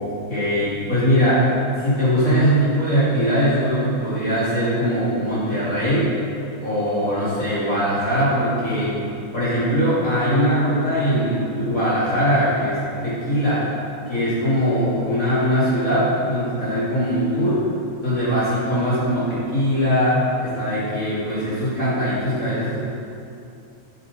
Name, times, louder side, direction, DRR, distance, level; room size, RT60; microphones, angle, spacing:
voice 1, 0.0-1.5 1.8-6.1 6.6-8.9 9.3-13.7 14.1-17.6 18.0-22.8, equal, 60° left, -11 dB, 0.8 m, -21 dB
10.5 x 9.2 x 4.0 m, 2.7 s
omnidirectional pair, 5.9 m